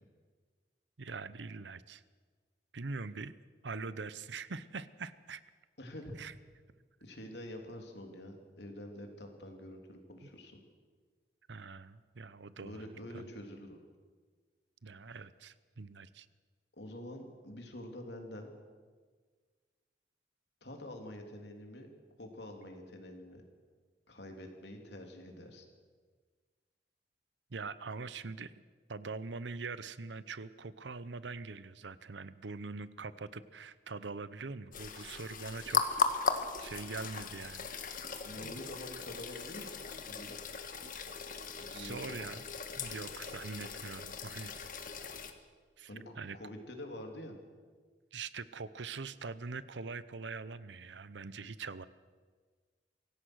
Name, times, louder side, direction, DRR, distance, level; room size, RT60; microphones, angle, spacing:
voice 1, 1.0-2.0 2.7-3.3 3.6-5.4 6.2-6.3 10.2-10.3 11.5-13.3 14.8-16.3 27.5-28.5 28.9-35.8 36.1-37.7 38.4-38.5 41.7-42.4 42.8-44.9 45.8-46.4 48.1-51.9, right 4 dB, 80° right, 16 dB, 0.8 m, -43 dB
voice 2, 5.8-6.2 7.0-10.6 12.6-13.8 16.8-18.5 20.6-21.9 22.2-23.4 24.1-25.6 38.2-40.3 41.6-42.2 45.9-47.4, left 1 dB, 70° left, 3 dB, 3.4 m, -47 dB
sound 1, 34.7-45.3, left 5 dB, 50° left, 1.6 m, -38 dB
25.0 x 16.5 x 6.4 m, 1.5 s
head